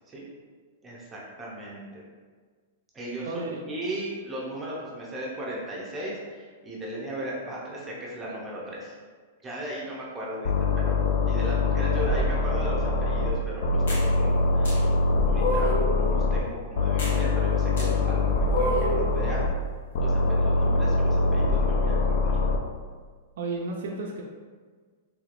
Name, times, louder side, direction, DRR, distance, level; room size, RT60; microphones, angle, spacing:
voice 1, 0.8-2.0 2.9-9.0 9.4-19.4 20.0-22.4, right 1 dB, 10° right, -5 dB, 0.6 m, -36 dB
voice 2, 3.3-3.6 23.4-24.2, right 3 dB, 60° right, -1 dB, 0.4 m, -32 dB
sound 1, 10.4-13.3 13.6-16.4 16.7-19.5 19.9-22.6, left 2 dB, 55° left, 0.3 m, -24 dB
sound 2, 13.9-14.1 14.6-14.8 15.3-15.9 17.0-17.2 17.8-17.9 18.5-19.0, equal, 75° left, 1.1 m, -28 dB
3.2 x 3.1 x 2.5 m, 1.5 s
supercardioid pair, 165°, 0 cm